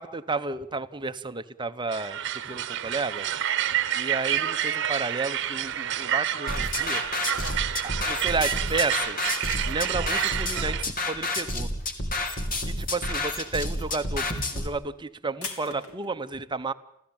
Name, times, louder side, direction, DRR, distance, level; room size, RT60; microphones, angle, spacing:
voice 1, 0.0-2.2 2.4-3.3 3.9-7.0 7.8-9.4 9.6-11.7 12.6-16.7, right 3 dB, 20° right, 10 dB, 0.8 m, -32 dB
sound 1, 1.9-10.8, right 10 dB, 55° right, 1.0 m, -29 dB
sound 2, 3.2-10.9 11.2-11.9 12.2-16.1, left 4 dB, 75° left, 3.5 m, -46 dB
sound 3, 6.5-14.7, left 2 dB, 40° left, 2.9 m, -30 dB
29.5 x 14.5 x 8.8 m, 0.81 s
head